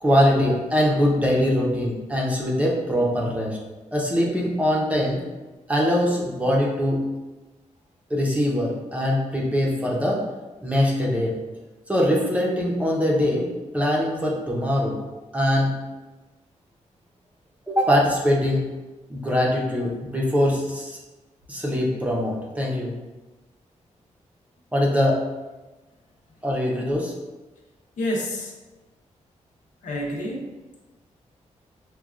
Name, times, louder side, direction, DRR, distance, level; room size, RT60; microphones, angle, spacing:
voice 1, 0.0-3.6 3.9-5.2 5.7-7.0 8.1-10.2 10.6-11.4 11.9-15.0 15.3-15.7 17.7-18.7 19.1-21.0 21.5-22.9 24.7-25.2 26.4-27.1, equal, 10° right, -3 dB, 0.6 m, -22 dB
voice 2, 28.0-28.5 29.8-30.6, left 1 dB, 85° left, -2 dB, 0.8 m, -28 dB
5.9 x 2.2 x 2.4 m, 1.1 s
wide cardioid pair, 170°, 13 cm